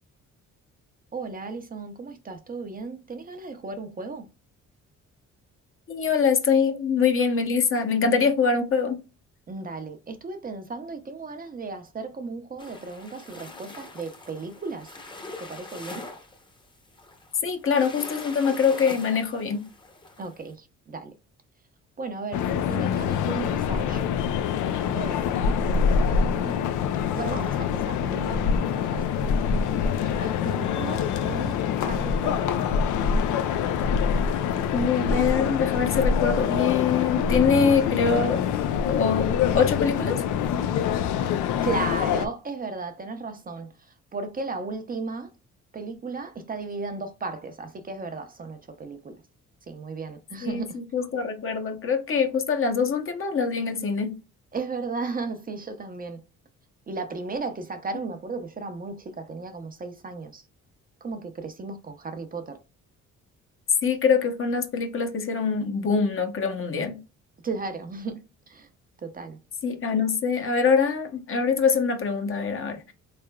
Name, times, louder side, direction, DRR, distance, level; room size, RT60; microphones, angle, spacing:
voice 1, 1.1-4.3 9.5-14.9 15.4-16.1 20.2-21.1 22.0-24.0 24.7-26.7 27.1-29.2 30.0-32.5 41.6-43.7 44.1-45.3 45.7-49.1 49.7-50.8 54.5-56.2 56.9-60.4 61.0-62.6 67.4-68.7 69.0-69.4, right 4 dB, 30° right, 0.6 m, -35 dB
voice 2, 5.9-9.0 17.4-19.7 34.7-38.4 38.8-40.2 50.4-54.1 63.8-67.0 69.6-72.9, left 5 dB, 45° left, 0.8 m, -24 dB
sound 1, 12.6-20.4, left 2 dB, 15° left, 0.8 m, -43 dB
sound 2, 22.3-42.3, left 7 dB, 80° left, 0.5 m, -25 dB
3.6 x 3.3 x 2.2 m
cardioid pair, 90°, 30 cm